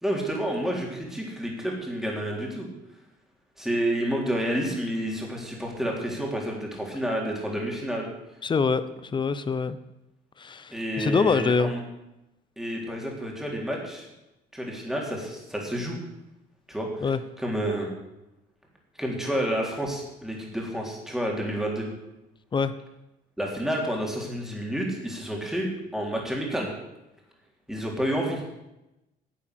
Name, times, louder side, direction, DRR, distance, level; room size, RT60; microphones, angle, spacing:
voice 1, 0.0-2.7 3.6-8.1 10.7-11.8 12.6-14.1 14.5-16.0 16.7-17.1 17.4-17.9 19.0-21.9 23.4-26.7 27.7-28.4, right 1 dB, ahead, -1 dB, 3.7 m, -29 dB
voice 2, 8.4-9.8 10.4-11.7 17.0-17.2 22.5-22.7, left 5 dB, 30° left, 13 dB, 0.9 m, -25 dB
10.5 x 8.4 x 8.2 m, 0.94 s
cardioid pair, 110°, 17 cm